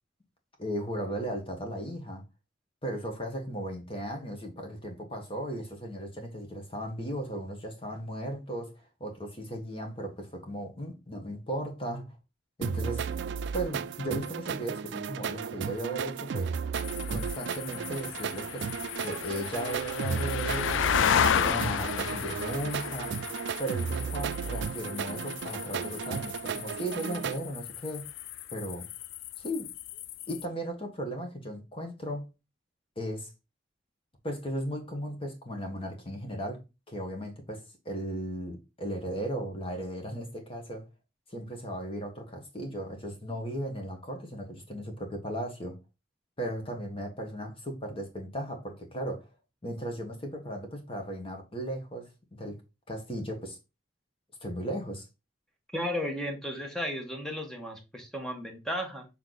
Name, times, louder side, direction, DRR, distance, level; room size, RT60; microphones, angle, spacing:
voice 1, 0.6-2.2 2.8-12.1 12.6-13.1 13.5-16.5 17.1-18.7 19.0-23.2 23.6-28.1 28.5-28.9 29.4-29.7 30.3-32.3 32.9-33.3 34.2-40.8 41.3-45.8 46.4-49.3 49.6-52.6 52.9-53.6 54.4-55.0, right 1 dB, 30° left, 1.6 m, -36 dB
sound 1, 12.6-27.4, right 6 dB, 65° right, 0.4 m, -34 dB
sound 2, 16.7-30.4, left 8 dB, 80° left, 0.4 m, -33 dB
voice 2, 55.7-59.1, equal, 5° left, 1.4 m, -34 dB
6.7 x 3.6 x 4.0 m
head